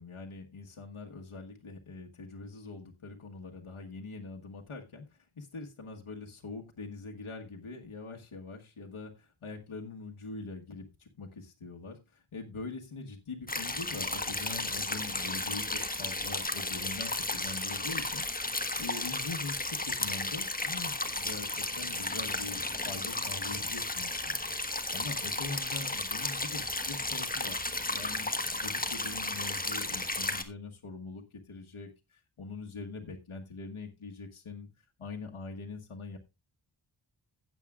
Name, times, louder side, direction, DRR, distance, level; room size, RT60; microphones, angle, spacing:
voice 1, 0.0-24.4 24.6-36.2, left 3 dB, 85° left, 1 dB, 1.5 m, -43 dB
sound 1, 13.5-30.4, left 2 dB, 20° left, 1.4 m, -34 dB
15.5 x 8.4 x 2.4 m, 0.24 s
wide cardioid pair, 80°, 48 cm